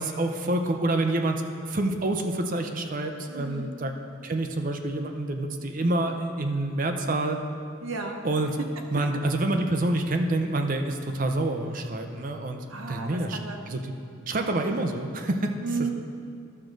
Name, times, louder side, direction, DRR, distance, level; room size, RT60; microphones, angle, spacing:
voice 1, 0.0-3.9 4.2-7.4 8.2-8.5 8.9-13.4 13.7-13.9 14.3-15.9, right 2 dB, 40° right, 5 dB, 0.6 m, -27 dB
voice 2, 3.3-3.7 7.8-8.2 12.7-13.6 14.3-14.6 15.6-15.9, right 3 dB, 90° right, 3 dB, 0.9 m, -34 dB
12.0 x 6.1 x 3.9 m, 2.3 s
head